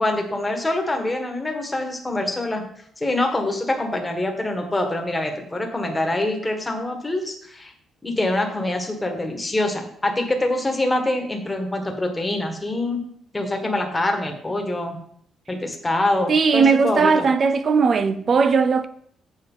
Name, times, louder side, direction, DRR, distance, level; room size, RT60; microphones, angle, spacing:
voice 1, 0.0-2.6 3.0-7.7 8.0-13.0 13.3-15.0 15.5-17.3, left 1 dB, 10° left, 1.5 m, -25 dB
voice 2, 16.3-18.9, right 5 dB, 40° right, 0.5 m, -18 dB
7.5 x 7.3 x 5.5 m
cardioid pair, 145°, 0 cm